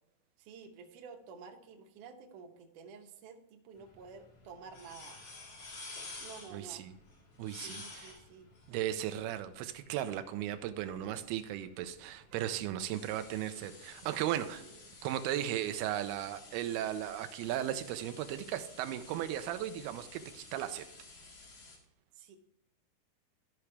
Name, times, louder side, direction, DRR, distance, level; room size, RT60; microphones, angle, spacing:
voice 1, 0.4-5.2 6.2-6.9 7.5-8.5 14.6-14.8 22.2-22.4, right 5 dB, 70° right, 3 dB, 2.2 m, -51 dB
sound 1, 3.7-21.8, left 3 dB, 50° left, 2.2 m, -52 dB
voice 2, 6.5-6.9 7.4-8.2 8.7-14.6 15.0-20.9, right 12 dB, 90° right, 9 dB, 2.6 m, -36 dB
13.5 x 5.9 x 3.3 m, 0.82 s
omnidirectional pair, 4.4 m